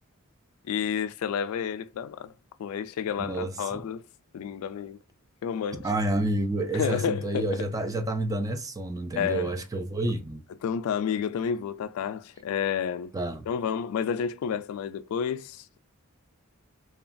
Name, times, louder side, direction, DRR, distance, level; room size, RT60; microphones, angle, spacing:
voice 1, 0.7-2.3 2.6-4.0 4.3-5.0 5.4-5.9 6.7-7.7 9.2-9.5 10.6-13.1 13.5-15.7, left 7 dB, 85° left, 0.3 m, -30 dB
voice 2, 3.2-3.8 5.8-10.4 13.1-13.4, right 2 dB, 15° right, 0.4 m, -29 dB
2.9 x 2.3 x 2.5 m
head